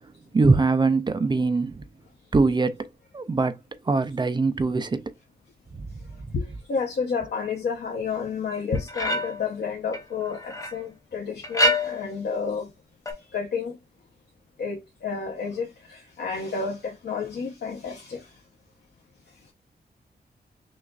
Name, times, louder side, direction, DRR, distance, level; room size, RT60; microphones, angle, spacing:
voice 1, 0.3-1.8 2.3-2.9 3.1-5.0 5.7-5.9 6.2-6.3, right 3 dB, 25° right, 0.4 m, -23 dB
voice 2, 6.3-12.7 13.3-13.8 14.6-18.3, left 5 dB, 85° left, 0.9 m, -30 dB
sound 1, 8.7-9.5 9.9-10.8 11.4-12.2 13.1-13.2, left 1 dB, 20° left, 0.9 m, -26 dB
6.1 x 2.5 x 2.3 m
wide cardioid pair, 140°, 17 cm